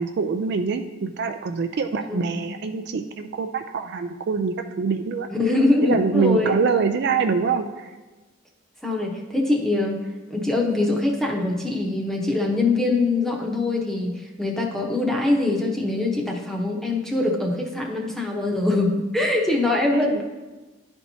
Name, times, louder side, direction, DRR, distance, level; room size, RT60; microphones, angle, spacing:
voice 1, 0.0-5.3 5.8-7.9 19.9-20.2, right 5 dB, 55° right, 7 dB, 0.4 m, -25 dB
voice 2, 2.1-2.4 5.3-6.5 8.8-10.0 10.3-20.2, left 2 dB, 5° left, -1 dB, 0.8 m, -23 dB
11.0 x 4.5 x 2.7 m, 1.2 s
head